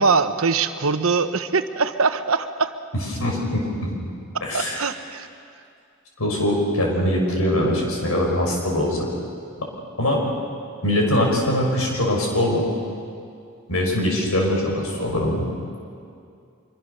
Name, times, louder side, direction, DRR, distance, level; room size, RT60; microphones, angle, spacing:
voice 1, 0.0-2.7 4.5-5.3, right 4 dB, 75° right, 9 dB, 1.1 m, -22 dB
voice 2, 3.1-3.9 4.4-4.8 6.2-9.1 10.0-10.2 10.8-12.6 13.7-15.5, left 1 dB, 85° left, 0 dB, 5.8 m, -22 dB
25.0 x 23.5 x 6.8 m, 2.4 s
head